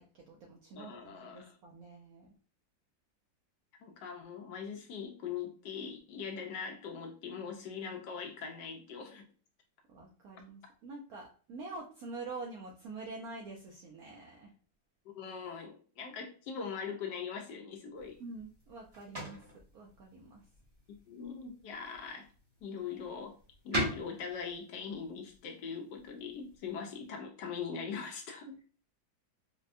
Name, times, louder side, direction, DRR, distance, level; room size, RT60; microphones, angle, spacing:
voice 1, 0.0-2.3 9.9-14.5 18.2-20.4 28.5-28.6, right 3 dB, 75° right, -1 dB, 0.8 m, -46 dB
voice 2, 0.8-1.5 3.8-9.2 15.1-18.2 20.9-22.3 22.6-23.3 23.6-28.5, left 6 dB, 75° left, 3 dB, 1.1 m, -41 dB
sound 1, 17.9-27.1, right 1 dB, 25° right, 0.9 m, -43 dB
4.3 x 2.1 x 2.4 m, 0.41 s
omnidirectional pair, 2.1 m